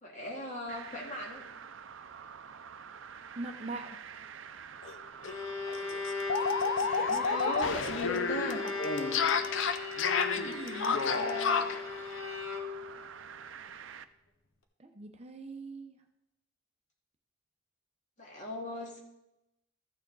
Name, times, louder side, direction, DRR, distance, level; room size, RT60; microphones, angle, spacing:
voice 1, 0.0-1.5 6.8-8.7 10.9-11.8 18.2-19.0, left 1 dB, 35° left, -1 dB, 2.1 m, -38 dB
sound 1, 0.7-14.0, right 7 dB, 70° right, 0.5 m, -47 dB
voice 2, 3.4-4.0 10.4-11.0 14.8-16.0, right 2 dB, 30° right, 4 dB, 0.7 m, -42 dB
sound 2, 4.8-4.9 5.2-5.3 5.7-11.8, left 5 dB, 65° left, 0.5 m, -30 dB
Bowed string instrument, 5.0-13.0, left 4 dB, 90° left, 1.2 m, -38 dB
14.0 x 7.0 x 3.9 m, 0.88 s
head